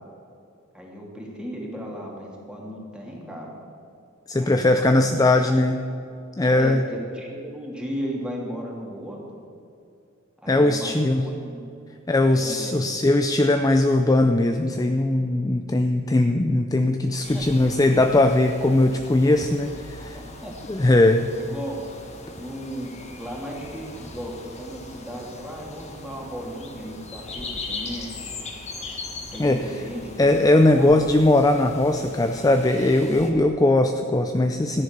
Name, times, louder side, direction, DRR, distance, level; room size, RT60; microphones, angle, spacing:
voice 1, 0.7-3.5 4.4-5.1 5.4-5.6 6.5-9.2 10.4-11.6 12.3-12.8 17.3-17.4 20.1-20.5 21.4-21.8 22.3-28.3 29.3-30.3 30.7-31.1, equal, 5° right, -2 dB, 2.7 m, -35 dB
voice 2, 4.3-5.8 6.4-6.8 10.5-11.3 12.1-20.2 20.7-21.3 29.4-29.7 30.2-34.8, left 2 dB, 15° left, 6 dB, 0.5 m, -20 dB
sound 1, 17.2-33.3, left 3 dB, 35° left, 1.7 m, -40 dB
14.0 x 10.5 x 6.7 m, 2.5 s
head